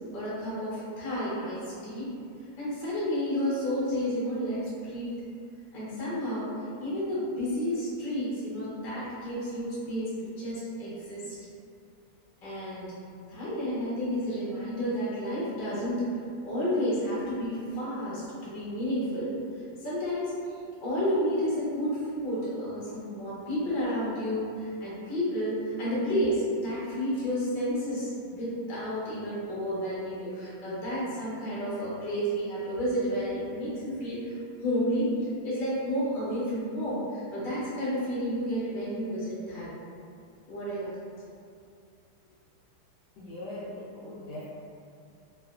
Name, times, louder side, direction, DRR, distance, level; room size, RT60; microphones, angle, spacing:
voice 1, 0.1-2.1 2.6-5.2 5.7-6.5 6.8-11.3 12.4-12.9 13.3-16.1 16.4-19.4 19.8-20.3 20.8-34.4 34.6-35.1 35.4-39.7 40.5-40.9, equal, 50° left, -9 dB, 0.6 m, -31 dB
voice 2, 43.2-44.4, left 1 dB, 80° left, -8 dB, 0.9 m, -40 dB
3.2 x 2.9 x 2.3 m, 2.4 s
omnidirectional pair, 2.4 m